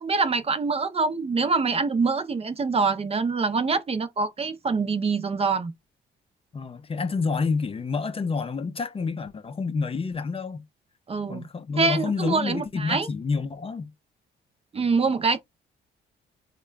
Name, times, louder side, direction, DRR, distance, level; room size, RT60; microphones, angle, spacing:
voice 1, 0.0-5.7 11.1-11.4 11.8-13.1 14.7-15.4, right 4 dB, 30° right, 0.5 m, -25 dB
voice 2, 6.5-10.6 11.3-13.9, left 4 dB, 30° left, 0.5 m, -28 dB
3.6 x 2.2 x 3.3 m
cardioid pair, 90°, 20 cm